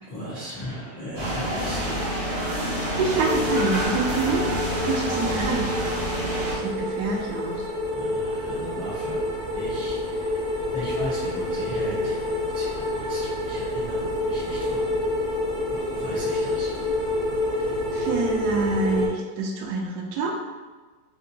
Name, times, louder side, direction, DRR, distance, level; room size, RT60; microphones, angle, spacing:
voice 1, 0.0-2.0 7.9-9.2 9.5-10.4 10.7-15.0 15.7-16.7, equal, 75° left, -10 dB, 0.3 m, -37 dB
sound 1, 1.1-6.6, equal, 35° right, 0.5 m, -28 dB
voice 2, 2.9-4.5 4.8-5.8 6.4-7.7 17.6-20.3, right 4 dB, 70° right, 1 dB, 1.0 m, -27 dB
sound 2, 3.2-19.1, left 1 dB, 40° left, 0.8 m, -28 dB
3.5 x 2.7 x 2.7 m, 1.3 s
omnidirectional pair, 1.9 m